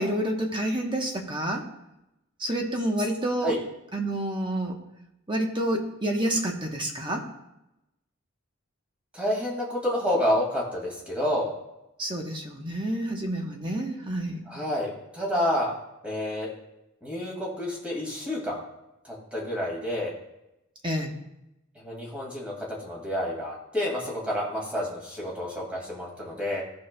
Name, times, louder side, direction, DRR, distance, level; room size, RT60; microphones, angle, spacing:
voice 1, 0.0-1.6 2.4-3.5 3.9-4.8 5.3-7.2 12.0-14.4 20.8-21.1, right 1 dB, 20° right, 1 dB, 0.9 m, -28 dB
voice 2, 9.1-11.5 14.5-15.7 16.0-16.5 17.0-18.6 19.0-20.1 21.8-26.6, left 1 dB, 5° right, -4 dB, 2.0 m, -29 dB
15.0 x 5.2 x 2.2 m, 0.90 s
head